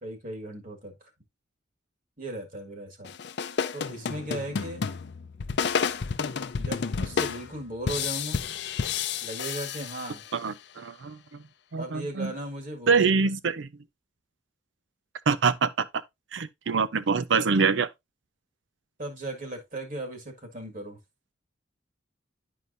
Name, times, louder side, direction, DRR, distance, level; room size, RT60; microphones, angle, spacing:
voice 1, 0.0-0.9 2.2-3.1 3.7-4.9 6.6-8.4 9.2-10.2 11.8-13.0 19.0-21.0, right 1 dB, 45° right, 1.8 m, -37 dB
sound 1, 3.0-10.5, left 6 dB, 60° left, 0.5 m, -31 dB
voice 2, 10.3-11.4 11.7-12.3 12.9-13.7 15.3-15.9 16.3-17.9, right 5 dB, 70° right, 0.6 m, -25 dB
11.0 x 4.7 x 2.6 m
head